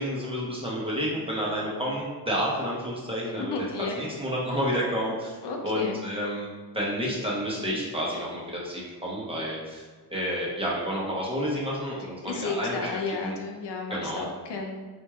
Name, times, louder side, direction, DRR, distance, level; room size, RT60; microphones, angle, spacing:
voice 1, 0.0-3.5 3.8-5.4 5.6-6.5 6.7-9.8 10.1-13.3 13.9-14.2, equal, 15° right, -5 dB, 0.8 m, -30 dB
voice 2, 3.4-4.0 5.4-6.0 12.3-14.8, left 4 dB, 80° left, 2 dB, 0.6 m, -33 dB
4.2 x 3.1 x 2.3 m, 1.4 s
wide cardioid pair, 140°, 40 cm